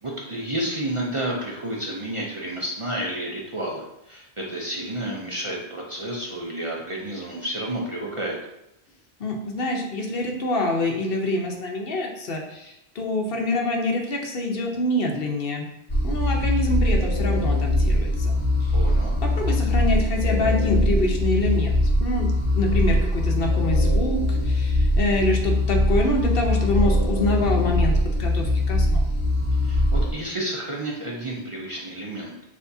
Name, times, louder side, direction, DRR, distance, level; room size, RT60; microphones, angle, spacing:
voice 1, 0.0-8.4 18.7-19.1 29.6-32.4, right 1 dB, 35° right, -3 dB, 0.6 m, -31 dB
voice 2, 9.2-15.6 16.0-18.8 19.2-22.3 22.5-29.0, left 1 dB, 60° left, 1 dB, 0.9 m, -26 dB
sound 1, 15.9-30.1, left 1 dB, 35° left, 0.7 m, -22 dB
6.7 x 2.7 x 2.7 m, 0.85 s
omnidirectional pair, 1.1 m